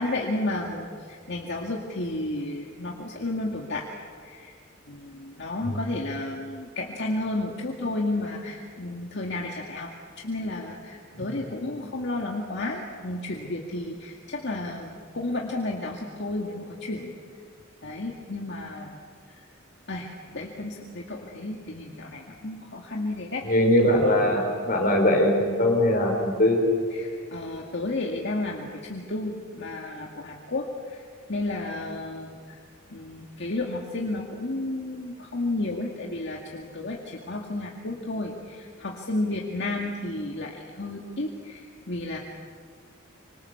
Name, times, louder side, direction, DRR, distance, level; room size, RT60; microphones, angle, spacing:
voice 1, 0.0-3.9 4.2-4.5 4.9-9.9 10.2-17.1 17.8-19.0 19.9-23.5 26.9-31.0 31.3-32.6 32.9-42.2, left 2 dB, 60° left, 0 dB, 2.1 m, -32 dB
voice 2, 23.4-26.6, left 1 dB, 45° left, 2 dB, 5.2 m, -21 dB
26.0 x 25.5 x 7.1 m, 2.2 s
head